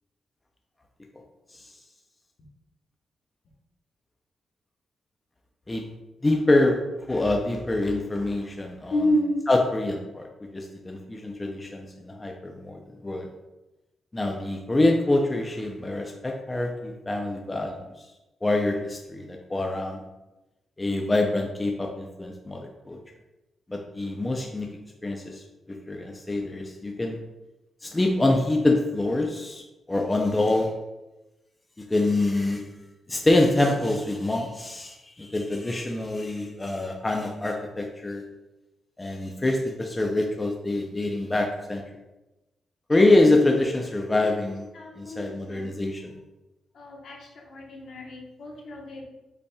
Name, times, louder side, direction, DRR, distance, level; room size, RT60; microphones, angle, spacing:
voice 1, 6.2-6.8 7.1-9.2 9.5-10.3 10.5-13.3 14.1-17.8 18.4-20.0 20.8-23.0 23.7-24.7 25.0-27.2 27.8-29.6 29.9-30.7 31.8-32.7 33.1-38.2 39.0-41.8 42.9-44.7 45.0-46.2, left 2 dB, 20° left, 1 dB, 0.5 m, -25 dB
voice 2, 8.9-9.3 44.8-45.6 46.8-47.2 47.5-49.0, equal, 70° left, -2 dB, 1.1 m, -29 dB
5.4 x 4.1 x 2.3 m, 1.0 s
cardioid pair, 100°, 0 cm